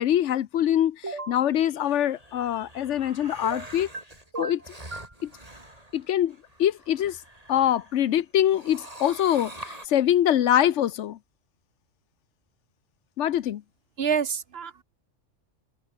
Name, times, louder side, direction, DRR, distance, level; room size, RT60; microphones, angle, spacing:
voice 1, 0.0-3.9 4.4-4.7 5.2-5.3 5.9-7.2 7.5-11.2 13.2-13.6, left 11 dB, 70° left, 1.0 m, -24 dB
sound 1, 1.0-1.4 3.4-4.0 4.3-5.1, right 2 dB, 70° right, 4.3 m, -35 dB
sound 2, 1.7-8.0 8.4-9.9, right 1 dB, 30° right, 5.4 m, -46 dB
voice 2, 14.0-14.8, right 7 dB, 55° right, 1.1 m, -27 dB
omnidirectional pair, 1.3 m